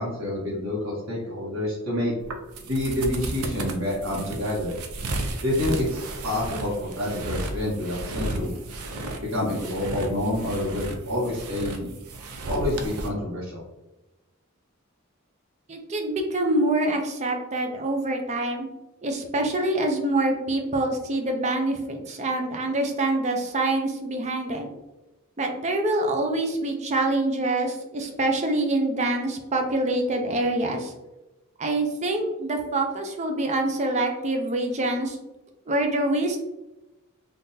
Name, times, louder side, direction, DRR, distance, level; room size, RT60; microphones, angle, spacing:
voice 1, 0.0-2.1 2.7-4.7 5.4-6.0 6.2-8.5 9.3-11.9 12.4-13.6, left 1 dB, 70° right, -7 dB, 1.2 m, -28 dB
sound 1, 2.2-13.1, right 2 dB, 85° right, 0.5 m, -34 dB
voice 2, 15.7-18.7 19.0-24.7 25.4-30.9 31.6-35.2 35.7-36.4, right 2 dB, 30° right, 4 dB, 0.5 m, -25 dB
3.6 x 2.5 x 2.7 m, 1.0 s
head